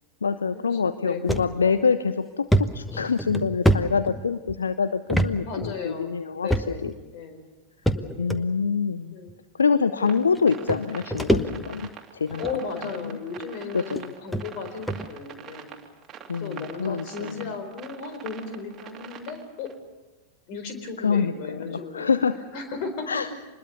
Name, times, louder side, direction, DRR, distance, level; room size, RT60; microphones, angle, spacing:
voice 1, 0.2-6.9 8.2-9.2 9.5-12.4 13.0-13.2 13.7-14.1 16.3-17.4 21.0-22.4 23.1-23.3, left 5 dB, 70° left, 13 dB, 0.7 m, -25 dB
voice 2, 1.0-1.5 5.4-7.5 7.9-8.6 9.1-9.4 10.0-10.1 12.4-15.7 16.3-19.7 20.5-22.1 22.5-23.1, left 5 dB, 45° left, 7 dB, 4.4 m, -35 dB
sound 1, 1.3-1.5 1.9-2.0 2.5-4.5 5.1-5.3 5.6-5.7 6.5-7.0 7.9-8.4 9.3-9.4 10.3-10.4 10.7-11.9 12.3-12.6 13.4-13.5 13.9-14.0 14.3-14.4 14.9-15.1, right 1 dB, 5° left, 1.0 m, -24 dB
sound 2, 10.0-19.7, right 8 dB, 25° right, 2.5 m, -44 dB
26.0 x 21.0 x 6.9 m, 1.2 s
figure-of-eight pair, 90°, 0 cm